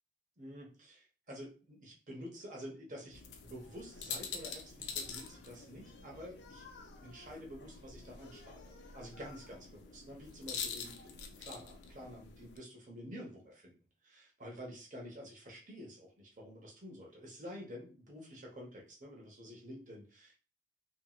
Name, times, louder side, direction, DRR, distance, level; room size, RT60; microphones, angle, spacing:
voice 1, 0.4-6.6 7.0-11.1 11.4-13.8 14.0-20.3, equal, 45° right, -2 dB, 0.9 m, -49 dB
sound 1, 3.1-12.6, left 6 dB, 70° left, 0.4 m, -46 dB
2.9 x 2.8 x 2.3 m, 0.37 s
head